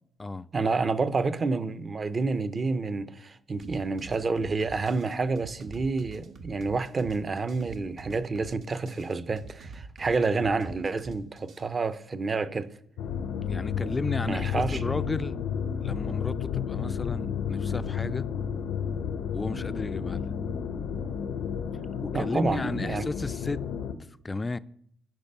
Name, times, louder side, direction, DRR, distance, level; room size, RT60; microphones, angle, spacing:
voice 1, 0.5-12.7 14.3-14.9 22.1-23.0, right 4 dB, 35° right, 0.6 m, -29 dB
sound 1, 3.6-11.6, right 4 dB, 70° right, 1.3 m, -46 dB
sound 2, 13.0-23.9, left 7 dB, 90° left, 0.7 m, -31 dB
voice 2, 13.5-15.4 15.8-18.3 19.3-20.3 22.0-23.6 24.2-24.6, left 3 dB, 20° left, 0.3 m, -33 dB
11.0 x 5.3 x 5.4 m
cardioid pair, 90°, 0 cm